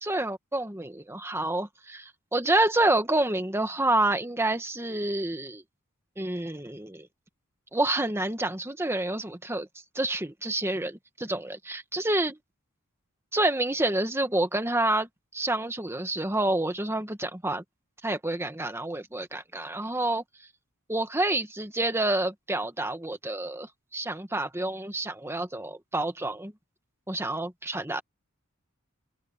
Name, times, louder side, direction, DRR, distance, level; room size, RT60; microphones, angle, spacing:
voice 1, 0.0-5.6 6.2-7.1 7.7-9.7 9.9-12.4 13.3-17.6 18.0-20.2 20.9-26.5 27.1-28.0, right 2 dB, 10° right, 1.7 m, -28 dB
open air
head